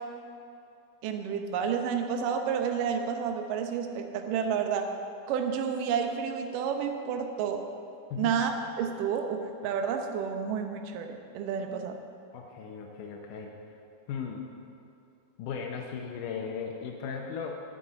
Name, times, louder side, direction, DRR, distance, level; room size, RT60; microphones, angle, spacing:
voice 1, 1.0-4.9 5.3-7.6 8.2-12.0, right 7 dB, 70° right, 5 dB, 2.3 m, -30 dB
voice 2, 12.3-13.5 14.1-14.5 15.4-17.5, left 6 dB, 75° left, 1 dB, 2.1 m, -37 dB
9.7 x 8.1 x 8.9 m, 2.6 s
omnidirectional pair, 4.4 m